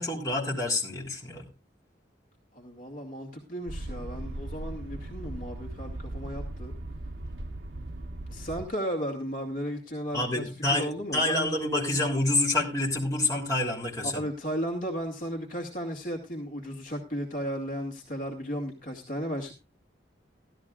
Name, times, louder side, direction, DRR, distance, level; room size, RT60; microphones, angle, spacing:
voice 1, 0.0-1.5 10.1-14.2, left 2 dB, 20° left, -2 dB, 3.2 m, -28 dB
voice 2, 2.5-6.7 8.3-11.6 14.0-19.5, equal, 50° left, 2 dB, 2.2 m, -35 dB
sound 1, 3.7-8.7, right 1 dB, 70° right, 0.9 m, -38 dB
15.5 x 13.0 x 2.4 m, 0.27 s
head